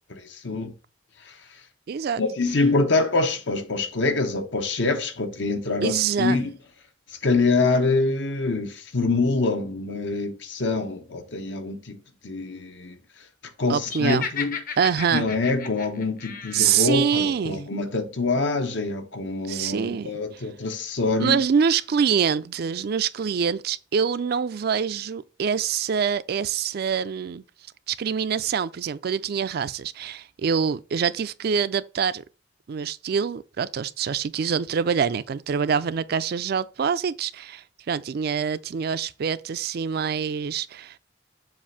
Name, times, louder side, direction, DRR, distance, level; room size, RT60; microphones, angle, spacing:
voice 1, 0.1-0.7 1.3-1.4 2.2-6.5 7.1-12.0 12.2-13.0 13.6-14.6 15.1-21.4, left 3 dB, 80° left, 1.1 m, -25 dB
voice 2, 1.9-2.2 5.8-6.5 13.7-14.3 14.8-15.2 16.5-17.7 19.5-20.1 21.2-27.4 27.9-32.2 32.7-41.0, right 7 dB, 55° right, 0.4 m, -25 dB
Laughter, 13.8-16.9, left 7 dB, 50° left, 0.8 m, -35 dB
7.3 x 2.6 x 5.6 m
head